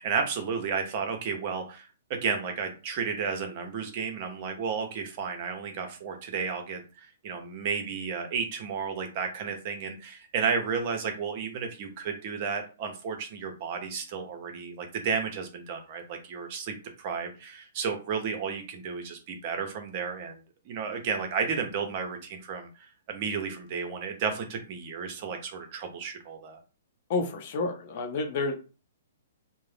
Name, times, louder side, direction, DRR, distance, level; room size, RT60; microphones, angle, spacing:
voice 1, 0.0-22.7 23.1-26.6, right 6 dB, 40° right, 5 dB, 0.7 m, -32 dB
voice 2, 27.1-28.6, left 3 dB, 45° left, 4 dB, 0.7 m, -29 dB
2.6 x 2.0 x 3.2 m, 0.33 s
hypercardioid pair, 145°, 0 cm